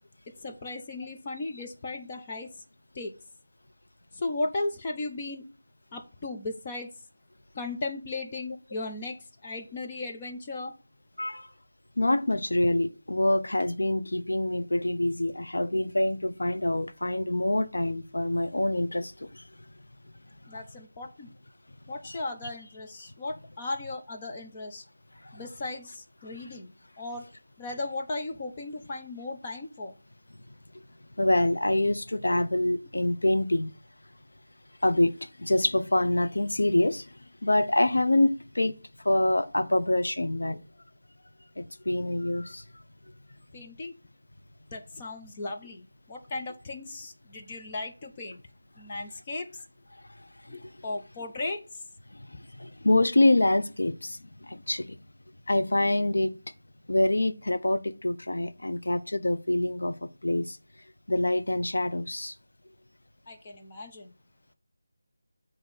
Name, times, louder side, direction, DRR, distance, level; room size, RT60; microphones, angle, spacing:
voice 1, 0.3-2.6 2.9-3.1 4.1-5.4 5.9-6.9 7.5-10.7 20.5-21.3 21.9-24.8 25.3-26.7 27.0-27.3 27.6-29.9 43.5-43.9 44.7-48.4 48.8-49.5 50.5-51.8 63.3-64.1, left 2 dB, 20° left, 0.8 m, -36 dB
voice 2, 12.0-19.4 20.5-20.6 22.0-22.2 25.2-25.3 31.2-33.7 34.8-37.1 37.4-38.7 39.0-40.6 41.6-42.6 50.6-50.7 52.1-55.0 55.5-56.4 56.9-59.9 60.2-60.6 61.1-62.3, left 1 dB, 85° left, 1.0 m, -26 dB
7.9 x 3.1 x 6.1 m
figure-of-eight pair, 175°, 0 cm